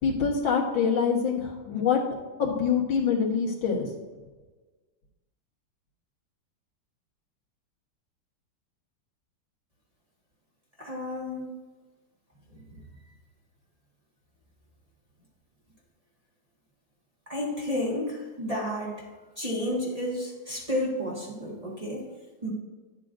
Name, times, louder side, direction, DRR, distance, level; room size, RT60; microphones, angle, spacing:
voice 1, 0.0-2.0 2.4-3.9, left 6 dB, 85° left, -2 dB, 2.3 m, -25 dB
voice 2, 10.8-11.5 12.5-12.6 17.3-19.0 19.4-22.0 22.4-22.5, left 1 dB, 20° right, -4 dB, 1.6 m, -31 dB
11.0 x 7.5 x 2.5 m, 1.3 s
omnidirectional pair, 2.1 m